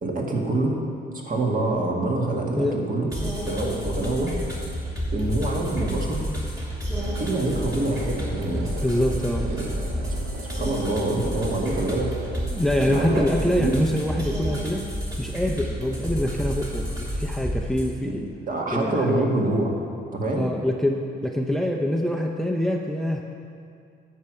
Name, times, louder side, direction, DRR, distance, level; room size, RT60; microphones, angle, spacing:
voice 1, 0.0-0.7 1.1-3.1 3.5-4.4 5.1-6.2 7.2-8.7 9.5-9.7 10.5-12.4 12.8-13.3 13.6-13.7 18.0-19.7 20.1-20.5, right 2 dB, 45° right, 0 dB, 1.7 m, -26 dB
sound 1, 3.1-17.9, equal, 20° right, 2.4 m, -30 dB
sound 2, 7.0-12.5, right 4 dB, 90° right, 0.9 m, -39 dB
voice 2, 8.8-9.5 12.5-14.8 15.2-18.3 18.7-19.3 20.3-23.2, left 1 dB, ahead, 2 dB, 0.6 m, -25 dB
10.0 x 4.8 x 7.6 m, 2.4 s
cardioid pair, 90°, 20 cm